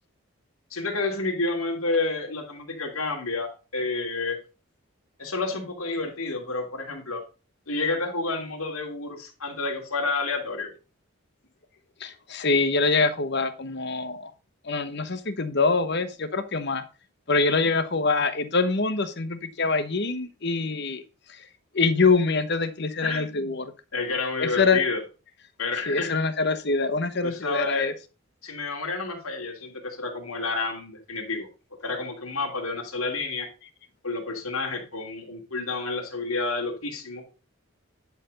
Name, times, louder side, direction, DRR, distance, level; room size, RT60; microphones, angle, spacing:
voice 1, 0.7-4.4 5.2-7.2 7.7-10.7 23.0-23.5 23.9-25.0 25.6-26.1 27.2-27.9 28.4-31.5 31.8-33.5 34.0-37.2, left 3 dB, 80° left, 1 dB, 2.9 m, -30 dB
voice 2, 12.0-14.3 14.6-16.8 17.3-21.0 21.3-21.5 21.7-23.6 24.4-24.8 25.7-27.9, left 4 dB, 50° left, 11 dB, 1.0 m, -24 dB
11.0 x 4.7 x 5.3 m, 0.33 s
head